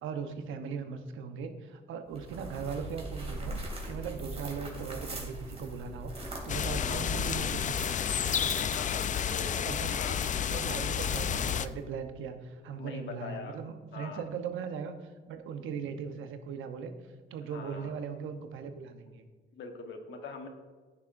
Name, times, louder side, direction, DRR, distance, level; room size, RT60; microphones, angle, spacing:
voice 1, 0.0-8.0 9.5-16.9 17.3-19.2, right 6 dB, 85° right, 7 dB, 0.9 m, -39 dB
sound 1, 2.1-12.0, right 2 dB, 30° right, 2.6 m, -42 dB
sound 2, 6.5-11.7, left 8 dB, 40° left, 0.4 m, -31 dB
voice 2, 6.6-7.1 8.7-10.2 12.8-13.6 13.9-14.2 17.5-17.9 19.5-20.5, left 5 dB, 70° left, 4 dB, 1.3 m, -43 dB
10.5 x 9.8 x 2.6 m, 1.4 s
cardioid pair, 90°, 20 cm